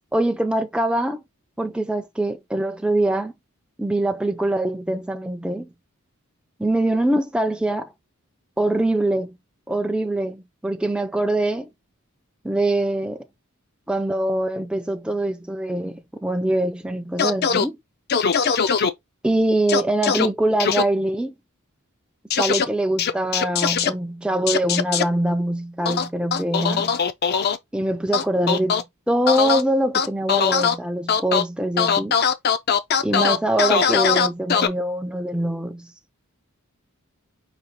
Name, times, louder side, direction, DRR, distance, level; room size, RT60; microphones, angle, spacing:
voice 1, 0.1-1.2 1.6-3.3 3.8-5.7 6.6-7.9 8.6-9.4 9.7-11.7 12.4-13.2 13.9-17.8 19.2-21.3 22.4-27.0 27.7-32.2 33.0-35.9, right 1 dB, 5° right, 0.4 m, -23 dB
sound 1, 17.2-17.7 18.1-18.9 19.7-20.3 20.6-20.8 22.3-22.6 23.0-23.9 24.5-25.0 25.8-27.6 28.1-28.8 29.3-29.6 29.9-30.7 31.1-31.4 31.8-34.7, left 6 dB, 50° left, 0.5 m, -20 dB
5.0 x 2.4 x 4.2 m
head